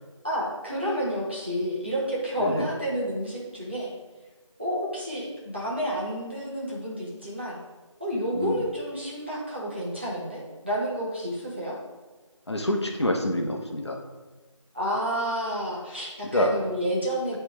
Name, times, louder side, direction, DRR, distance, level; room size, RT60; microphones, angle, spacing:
voice 1, 0.2-3.9 4.6-7.6 8.0-11.8 14.7-17.4, equal, 20° right, -7 dB, 1.1 m, -30 dB
voice 2, 12.5-14.0 16.3-16.5, left 1 dB, 55° left, 1 dB, 1.0 m, -26 dB
9.6 x 3.4 x 4.6 m, 1.2 s
figure-of-eight pair, 180°, 17 cm